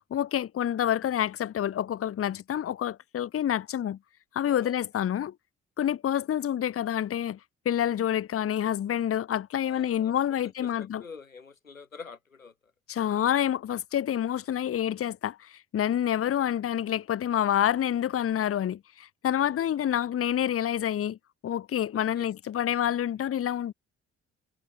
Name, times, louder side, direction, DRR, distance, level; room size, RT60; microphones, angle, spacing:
voice 1, 0.0-4.0 4.3-5.3 5.8-7.4 7.6-11.0 12.9-21.2 21.4-23.7, left 10 dB, 35° left, 1.0 m, -28 dB
voice 2, 4.4-4.8 9.6-10.1 10.4-12.7 19.5-19.7 21.9-22.3, left 5 dB, 90° left, 1.1 m, -47 dB
figure-of-eight pair, 45°, 39 cm